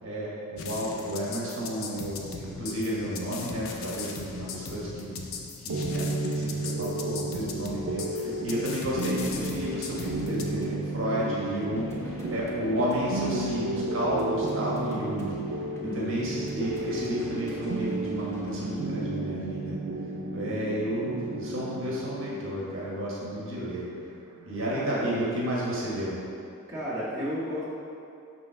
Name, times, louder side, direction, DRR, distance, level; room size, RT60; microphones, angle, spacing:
voice 1, 0.0-5.2 5.6-15.6 15.9-19.8 20.3-23.9 24.4-26.2, right 1 dB, 65° right, -6 dB, 1.2 m, -32 dB
sound 1, 0.6-10.5, left 5 dB, 75° left, 0.5 m, -39 dB
sound 2, 5.7-25.3, right 2 dB, 85° right, 0.5 m, -33 dB
voice 2, 8.2-8.6 9.0-9.2 15.8-16.2 24.7-25.2 26.7-27.6, equal, 15° right, -10 dB, 1.4 m, -34 dB
sound 3, 9.2-18.8, left 1 dB, 10° left, 0.5 m, -44 dB
6.1 x 3.1 x 5.6 m, 2.6 s
head